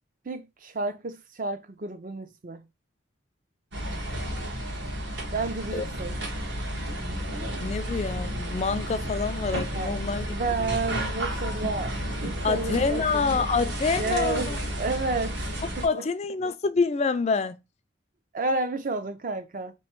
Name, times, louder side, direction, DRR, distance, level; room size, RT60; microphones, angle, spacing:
voice 1, 0.3-2.7 5.3-6.2 9.7-10.0 10.3-13.2 14.0-15.4 15.8-16.0 18.3-19.7, right 3 dB, 40° right, 0.5 m, -31 dB
sound 1, 3.7-15.9, equal, 65° right, 1.2 m, -32 dB
voice 2, 7.6-10.3 10.6-10.8 12.4-14.6 15.8-17.6, left 4 dB, 35° left, 0.3 m, -27 dB
3.5 x 3.0 x 4.5 m
head